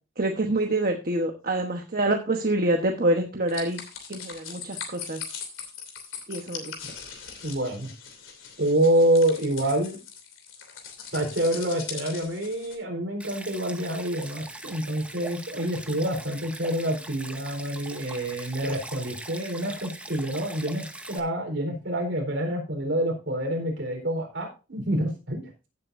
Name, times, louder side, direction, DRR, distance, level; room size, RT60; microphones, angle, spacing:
voice 1, 0.2-3.8 4.1-5.2 6.3-6.7, right 1 dB, 45° right, 3 dB, 1.1 m, -26 dB
sound 1, 3.5-12.8, left 7 dB, 85° left, 2.9 m, -40 dB
voice 2, 7.4-7.9 8.6-10.0 11.1-25.4, right 1 dB, 65° right, 2 dB, 4.1 m, -27 dB
Stream, 13.2-21.2, right 2 dB, 5° right, 0.9 m, -41 dB
16.0 x 7.9 x 2.6 m, 0.31 s
head